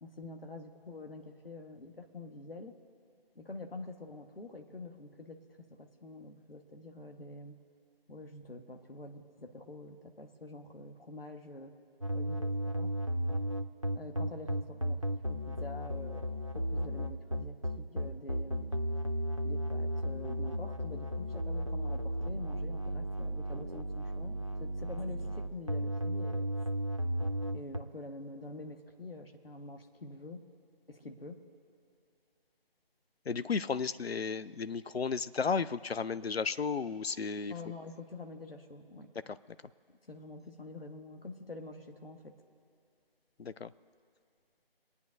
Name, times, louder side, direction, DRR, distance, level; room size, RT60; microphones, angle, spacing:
voice 1, 0.0-2.8 3.3-5.4 5.7-7.6 8.1-11.7 12.1-13.0 13.9-16.2 16.5-18.8 19.4-26.7 27.5-30.4 30.9-31.4 37.5-39.1 40.1-42.3, left 2 dB, 70° left, 5 dB, 1.3 m, -46 dB
sound 1, 12.0-27.8, equal, 35° right, 0.5 m, -34 dB
voice 2, 33.3-37.5 43.4-43.7, left 5 dB, 90° left, 15 dB, 0.5 m, -33 dB
26.5 x 9.7 x 2.6 m, 2.4 s
figure-of-eight pair, 165°, 30 cm